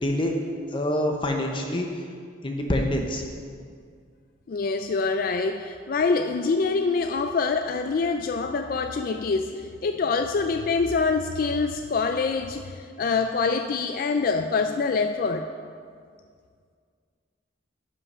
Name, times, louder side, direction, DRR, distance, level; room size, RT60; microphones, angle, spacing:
voice 1, 0.0-0.3 0.7-2.0 2.4-3.2, left 1 dB, 25° left, 2 dB, 0.7 m, -26 dB
voice 2, 4.5-15.5, left 4 dB, 50° left, 7 dB, 0.3 m, -25 dB
11.0 x 5.6 x 5.5 m, 2.1 s
head